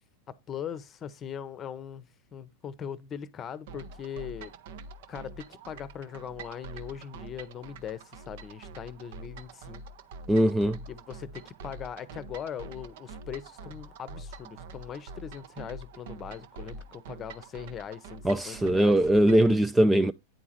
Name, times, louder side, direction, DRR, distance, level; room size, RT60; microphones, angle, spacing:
voice 1, 0.3-4.5 5.1-9.8 10.9-19.0, left 8 dB, 25° left, 0.8 m, -40 dB
sound 1, 3.7-19.5, right 3 dB, 55° right, 0.7 m, -45 dB
voice 2, 10.3-10.8 18.2-20.1, right 1 dB, 10° right, 0.3 m, -21 dB
9.3 x 4.8 x 4.3 m
figure-of-eight pair, 90°, 0 cm